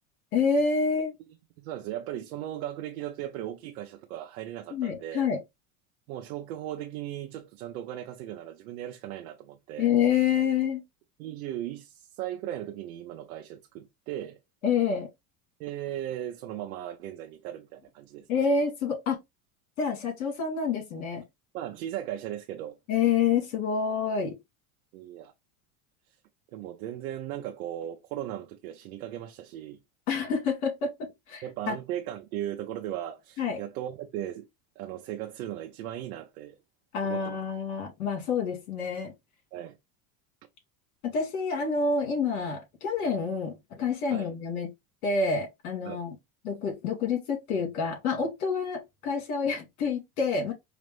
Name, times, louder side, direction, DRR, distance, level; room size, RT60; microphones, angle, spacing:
voice 1, 0.3-1.1 4.7-5.4 9.8-10.8 14.6-15.1 18.3-19.2 19.8-21.2 22.9-24.4 30.1-31.7 33.4-33.6 36.9-39.1 41.0-44.7 45.0-46.2 46.4-50.5, left 5 dB, 80° left, 2.1 m, -28 dB
voice 2, 1.6-5.3 6.1-9.9 11.2-14.4 15.6-18.3 21.5-22.8 24.9-25.3 26.5-29.8 31.4-34.5 34.8-36.6 37.0-37.4 39.5-39.8 44.1-44.3 45.8-46.0, right 12 dB, 85° right, 0.8 m, -37 dB
4.9 x 2.0 x 3.2 m
supercardioid pair, 110°, 42 cm